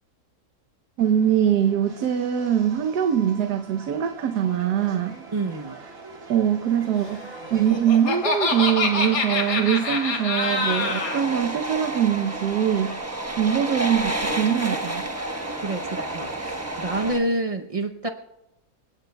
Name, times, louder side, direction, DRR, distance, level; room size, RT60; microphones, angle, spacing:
Subway metro underground, 1.0-17.1, right 3 dB, 55° right, 2.3 m, -40 dB
voice 1, 1.0-5.2 6.3-13.0 13.4-15.0, right 9 dB, 75° right, 6 dB, 1.4 m, -23 dB
voice 2, 5.3-5.8 15.6-18.1, right 2 dB, 40° right, 4 dB, 0.5 m, -28 dB
Laughter, 7.4-11.2, left 3 dB, 80° left, 2.4 m, -25 dB
sound 1, 10.4-17.2, right 1 dB, 10° right, 0.9 m, -31 dB
28.5 x 17.0 x 2.3 m, 0.93 s
omnidirectional pair, 1.7 m